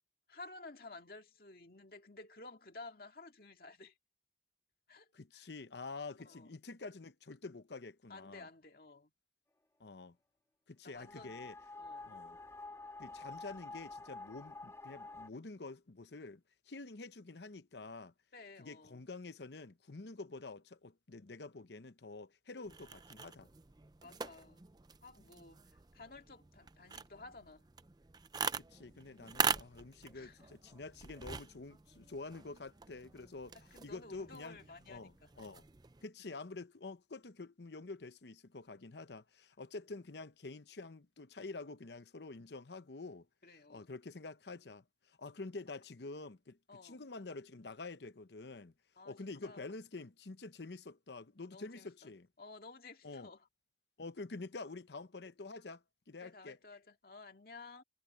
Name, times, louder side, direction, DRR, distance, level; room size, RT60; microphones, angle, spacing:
voice 1, 0.3-3.9 4.9-5.1 5.3-5.5 6.2-6.5 8.1-9.1 10.8-11.5 11.8-12.1 18.3-19.1 24.0-24.6 25.0-27.6 30.1-30.4 33.5-35.3 43.4-43.9 46.7-47.0 49.0-49.7 51.4-52.1 52.4-53.5 56.2-57.8, left 3 dB, 55° left, 2.3 m, -54 dB
voice 2, 5.1-8.5 9.8-10.2 10.7-11.5 12.0-12.4 13.0-18.1 18.6-23.5 28.6-33.6 33.8-34.6 34.9-35.7 36.0-43.3 43.7-48.7 49.0-52.3 53.0-53.3 54.0-56.6, left 3 dB, 70° left, 0.9 m, -48 dB
sound 1, 10.9-15.3, left 3 dB, 15° left, 2.3 m, -49 dB
sound 2, 22.6-36.0, right 5 dB, 20° right, 0.5 m, -43 dB
head